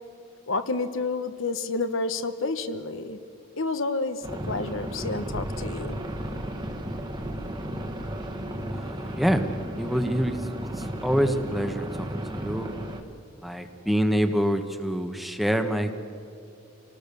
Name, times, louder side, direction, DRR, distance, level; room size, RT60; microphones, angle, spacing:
voice 1, 0.5-6.0, left 3 dB, 70° left, 9 dB, 1.1 m, -30 dB
sound 1, 4.2-13.0, right 1 dB, 20° right, 1.6 m, -34 dB
voice 2, 8.7-9.4 9.8-12.1 12.3-12.7 13.4-15.9, equal, ahead, 6 dB, 1.2 m, -26 dB
27.0 x 19.0 x 6.9 m, 2.6 s
head